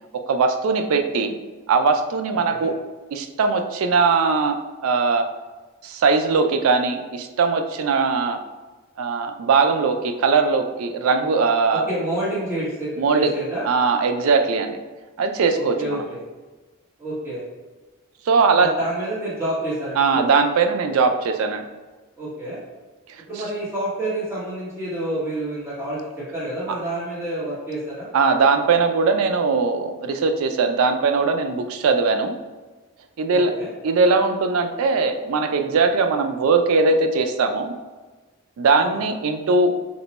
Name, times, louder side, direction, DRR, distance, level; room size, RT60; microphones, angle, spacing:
voice 1, 0.3-1.4 1.7-2.7 3.1-4.6 4.8-5.3 5.8-8.4 9.0-11.9 13.0-13.3 13.6-14.8 15.2-16.0 18.3-18.7 20.0-21.6 23.1-23.2 28.1-32.3 33.2-33.5 33.8-37.7 38.6-39.7, right 4 dB, 70° right, 6 dB, 0.3 m, -20 dB
voice 2, 11.9-13.6 15.5-16.2 17.0-17.4 18.6-20.2 22.2-22.6 23.3-28.1 33.3-33.7 38.7-39.0, right 1 dB, 10° right, -11 dB, 1.0 m, -28 dB
3.0 x 2.1 x 4.0 m, 1.3 s
head